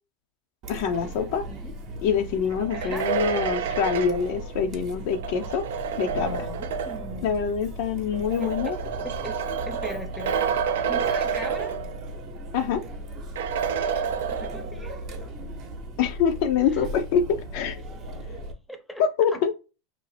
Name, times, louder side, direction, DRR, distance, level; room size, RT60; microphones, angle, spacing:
Chatter, 0.6-18.5, right 1 dB, 50° right, 0.7 m, -38 dB
voice 1, 0.7-1.5 2.0-5.7 6.0-6.4 7.2-8.8 12.5-12.8 16.0-17.8 19.0-19.5, left 7 dB, 60° left, 0.4 m, -25 dB
sound 1, 2.5-7.2 8.1-12.3 12.6-12.7 13.4-14.9, right 7 dB, 75° right, 0.3 m, -29 dB
voice 2, 2.7-3.1 6.2-7.3 8.4-8.8 9.0-9.4 9.7-10.4 10.9-11.8 14.0-15.4 16.7-16.9 18.7-19.0, equal, 5° left, 0.6 m, -39 dB
2.5 x 2.0 x 3.2 m
hypercardioid pair, 90°, 0 cm